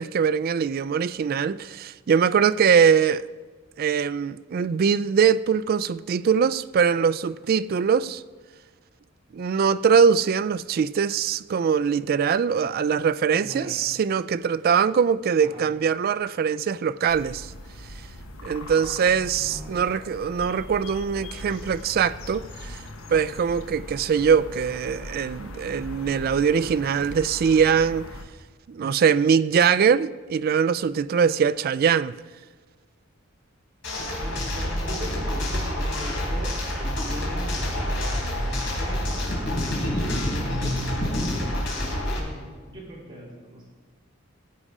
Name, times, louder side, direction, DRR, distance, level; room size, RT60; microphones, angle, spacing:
voice 1, 0.0-3.3 3.8-8.2 9.3-17.5 18.4-22.8 23.1-28.1 28.7-32.2, right 6 dB, 45° right, 0.3 m, -22 dB
voice 2, 13.4-13.8 15.4-15.6 18.4-20.0 34.1-43.7, equal, 25° right, 3.9 m, -40 dB
sound 1, 17.1-28.2, left 1 dB, 80° left, 1.1 m, -40 dB
sound 2, 33.8-42.2, left 1 dB, 65° left, 3.7 m, -27 dB
15.0 x 8.4 x 5.0 m
head